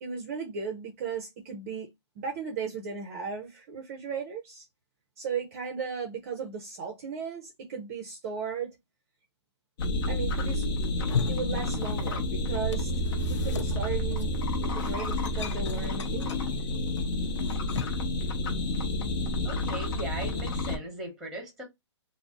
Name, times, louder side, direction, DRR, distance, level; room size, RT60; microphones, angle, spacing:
voice 1, 0.0-1.9 2.2-4.7 5.2-8.7 10.1-10.7 11.3-12.9 13.3-14.3 14.6-16.5, right 6 dB, 30° right, 0.5 m, -36 dB
sound 1, 9.8-20.8, left 1 dB, 50° left, 0.8 m, -30 dB
sound 2, 10.9-12.3 12.5-18.1, left 6 dB, 80° left, 0.4 m, -38 dB
voice 2, 19.4-21.6, right 2 dB, 5° right, 0.9 m, -38 dB
2.5 x 2.0 x 3.5 m
hypercardioid pair, 150°, 15 cm